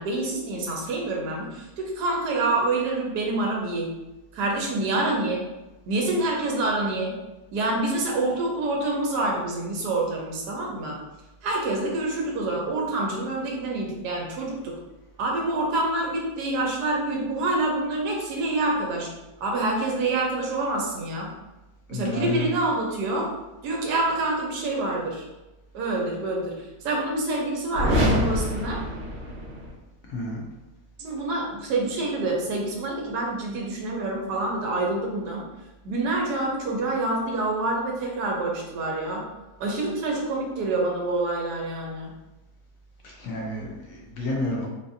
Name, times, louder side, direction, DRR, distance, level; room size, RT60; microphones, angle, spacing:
voice 1, 0.0-3.9 4.3-5.4 5.9-7.1 7.5-11.0 11.4-14.7 15.2-19.1 19.4-21.3 21.9-23.3 23.6-25.2 25.7-26.5 26.8-28.8 31.0-35.5 35.8-39.3 39.6-42.1, right 2 dB, 75° right, -1 dB, 1.3 m, -27 dB
voice 2, 21.9-22.5 30.1-30.4 43.0-44.7, left 2 dB, 65° left, -2 dB, 0.9 m, -30 dB
sound 1, 27.7-29.7, equal, 50° right, 0.9 m, -25 dB
3.9 x 2.5 x 2.5 m, 1.0 s
omnidirectional pair, 1.8 m